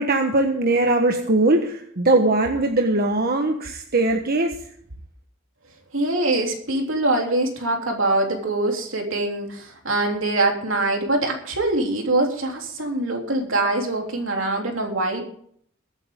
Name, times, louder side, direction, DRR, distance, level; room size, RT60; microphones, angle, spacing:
voice 1, 0.0-4.5, right 2 dB, 50° right, 3 dB, 1.4 m, -20 dB
voice 2, 5.9-15.2, right 2 dB, 75° right, 2 dB, 3.4 m, -23 dB
22.5 x 9.0 x 3.8 m, 0.63 s
head